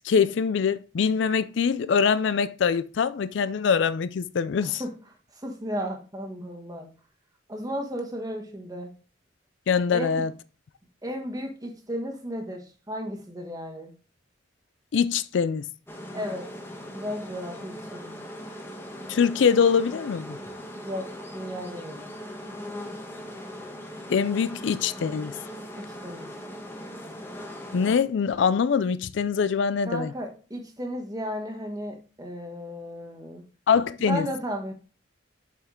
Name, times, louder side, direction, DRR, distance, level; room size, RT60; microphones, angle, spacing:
voice 1, 0.0-4.8 9.7-10.3 14.9-15.6 19.1-20.4 24.1-25.3 27.7-30.1 33.7-34.3, left 6 dB, 65° left, 0.4 m, -23 dB
voice 2, 4.6-4.9 5.3-6.9 7.5-8.9 9.9-10.2 11.0-13.9 16.1-16.5 16.9-18.2 20.8-22.1 25.8-26.3 29.9-33.4 34.1-34.7, equal, 20° right, 1.4 m, -34 dB
sound 1, 15.9-28.0, equal, 10° left, 1.1 m, -40 dB
7.3 x 5.7 x 3.7 m
head